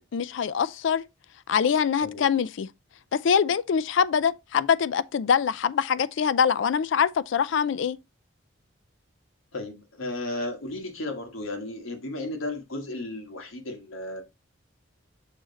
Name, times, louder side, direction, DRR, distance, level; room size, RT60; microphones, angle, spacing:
voice 1, 0.1-1.0 1.5-2.7 3.1-8.0, left 7 dB, 65° left, 0.3 m, -24 dB
voice 2, 9.5-14.2, left 2 dB, 85° left, 1.6 m, -34 dB
6.4 x 3.7 x 4.0 m
head